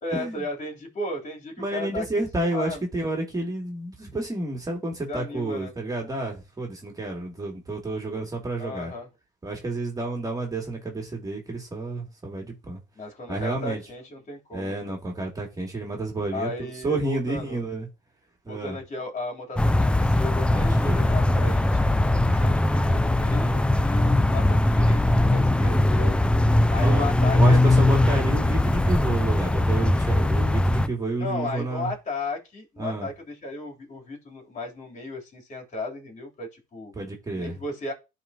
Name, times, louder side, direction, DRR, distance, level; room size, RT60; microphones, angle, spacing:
voice 1, 0.0-2.8 5.1-5.7 8.6-9.1 13.0-15.0 16.3-17.6 18.5-21.9 22.2-26.2 26.7-27.6 28.0-28.7 31.2-36.9 37.4-37.9, left 2 dB, 35° left, 3.6 m, -35 dB
voice 2, 1.6-8.9 9.4-12.8 13.3-13.8 14.5-16.5 16.8-17.9 18.5-18.8 20.5-21.0 26.8-27.1 27.3-31.9 32.8-33.1 36.9-37.5, right 2 dB, 20° right, 2.7 m, -30 dB
sound 1, 19.6-30.9, left 1 dB, 5° left, 0.4 m, -20 dB
11.5 x 4.2 x 2.9 m
supercardioid pair, 85°, 20 cm